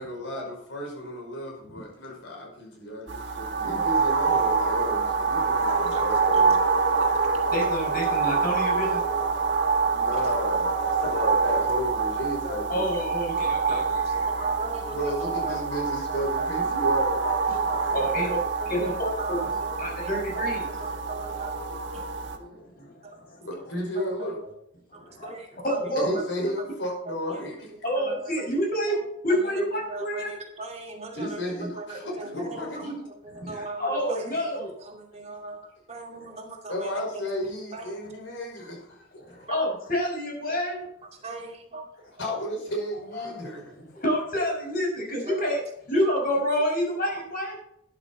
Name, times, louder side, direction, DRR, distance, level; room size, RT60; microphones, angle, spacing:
voice 1, 0.0-6.6 7.3-7.4 10.0-12.8 13.3-13.4 14.9-17.3 23.4-24.4 26.0-27.7 31.1-33.0 36.7-39.2 42.2-43.9, equal, 75° left, -1 dB, 5.3 m, -33 dB
sound 1, 3.1-22.4, right 5 dB, 65° right, 1.7 m, -26 dB
voice 2, 5.7-6.0 6.3-6.4 7.0-7.1 8.8-8.9 10.1-10.2 11.0-11.5 12.4-12.6 13.7-15.7 16.1-16.5 17.2-20.1 20.8-21.5 21.9-22.0 23.0-23.2 24.0-24.1 24.4-24.5 24.9-26.2 27.0-27.4 27.9-28.5 28.9-32.8 33.3-33.8 34.1-37.3 37.7-37.9 41.2-41.8 45.2-45.5 45.9-46.0, right 2 dB, 35° right, 1 dB, 2.4 m, -39 dB
voice 3, 7.5-9.0 9.9-10.0 12.7-14.2 17.5-17.6 17.9-18.4 18.7-19.4 19.8-20.7 21.9-23.4 24.9-26.2 27.8-29.0 29.2-30.3 33.4-34.7 39.2-40.8 43.1-43.4 43.9-47.6, equal, 50° left, 0 dB, 6.2 m, -28 dB
12.5 x 11.0 x 4.3 m, 0.74 s
head